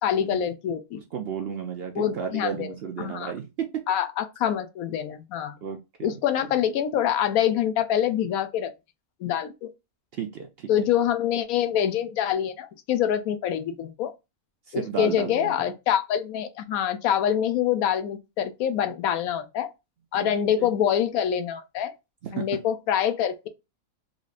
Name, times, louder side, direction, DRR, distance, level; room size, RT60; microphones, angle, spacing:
voice 1, 0.0-1.0 1.9-3.3 3.9-5.6 6.0-8.7 9.2-9.7 10.7-14.1 14.7-19.7 20.1-21.9 22.3-23.5, left 9 dB, 80° left, 1.0 m, -25 dB
voice 2, 1.1-3.9 5.6-6.1 10.1-10.7 14.7-15.6 20.1-20.3 20.6-20.7 22.2-22.6, right 7 dB, 65° right, 0.6 m, -33 dB
4.0 x 3.0 x 2.4 m
omnidirectional pair, 1.5 m